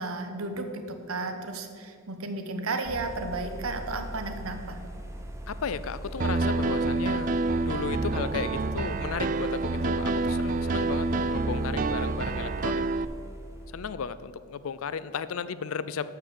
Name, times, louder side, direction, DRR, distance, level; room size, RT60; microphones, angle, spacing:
voice 1, 0.0-4.8, right 3 dB, 75° right, 6 dB, 1.1 m, -33 dB
sound 1, 2.8-13.7, right 1 dB, 15° right, 0.8 m, -40 dB
voice 2, 5.5-7.4 7.6-12.8 13.7-16.1, left 6 dB, 70° left, 15 dB, 0.4 m, -34 dB
Piano, 6.2-13.0, right 3 dB, 40° right, 0.4 m, -28 dB
12.5 x 4.8 x 7.8 m, 2.2 s
head